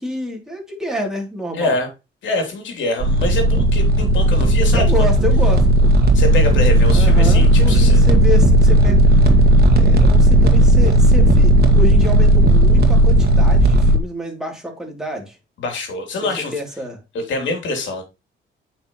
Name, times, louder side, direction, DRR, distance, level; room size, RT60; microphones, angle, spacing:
voice 1, 0.0-1.8 4.7-5.9 6.9-9.3 10.0-15.4 16.2-17.0, left 1 dB, 5° right, 3.3 m, -28 dB
voice 2, 1.5-1.9 2.2-5.1 6.1-8.0 15.6-16.5 17.1-18.0, left 2 dB, 70° left, 3.4 m, -24 dB
sound 1, 3.0-14.0, right 1 dB, 50° right, 1.8 m, -13 dB
8.5 x 5.9 x 3.1 m
cardioid pair, 90°, 20 cm